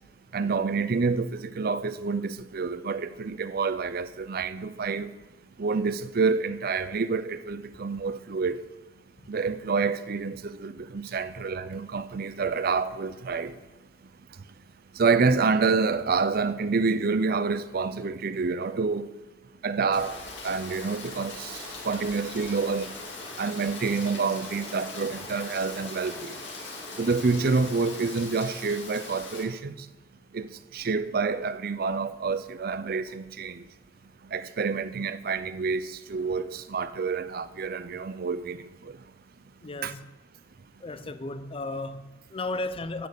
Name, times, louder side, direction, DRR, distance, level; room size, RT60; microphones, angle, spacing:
voice 1, 0.3-5.1 5.6-8.6 9.3-13.5 15.0-19.1 19.6-21.6 21.8-22.9 23.4-26.3 27.0-29.9 30.3-30.5 30.7-33.6 34.3-38.9 39.8-39.9, right 4 dB, 55° right, 0.5 m, -28 dB
Rain, 19.9-29.4, left 3 dB, 70° left, 2.6 m, -40 dB
voice 2, 39.6-40.1 40.8-43.1, left 2 dB, 30° left, 0.5 m, -34 dB
10.0 x 6.8 x 8.0 m
head